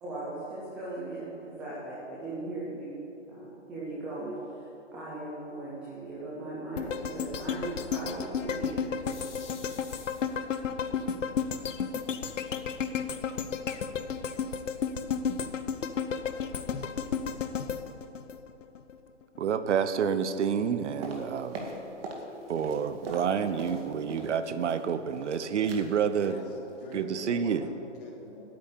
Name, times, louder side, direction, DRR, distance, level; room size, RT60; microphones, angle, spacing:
voice 1, 0.0-3.0 3.3-8.9, right 2 dB, 5° right, -7 dB, 0.4 m, -38 dB
sound 1, 6.8-19.0 19.4-19.5, left 6 dB, 85° left, 0.9 m, -33 dB
sound 2, 9.0-10.6 11.4-11.5 11.9-12.0 12.3-12.9, left 5 dB, 70° left, 2.7 m, -51 dB
voice 2, 19.4-21.6 22.5-26.4 26.9-27.7, right 7 dB, 70° right, 11 dB, 0.9 m, -28 dB
sound 3, 21.0-22.3 22.5-24.3 24.6-25.4 25.7-25.9 26.2-26.4 26.7-26.9 27.2-27.3, right 2 dB, 50° right, 2.2 m, -40 dB
voice 3, 26.2-28.4, left 1 dB, 45° left, -3 dB, 3.3 m, -45 dB
9.4 x 8.9 x 8.5 m, 2.9 s
hypercardioid pair, 150°, 37 cm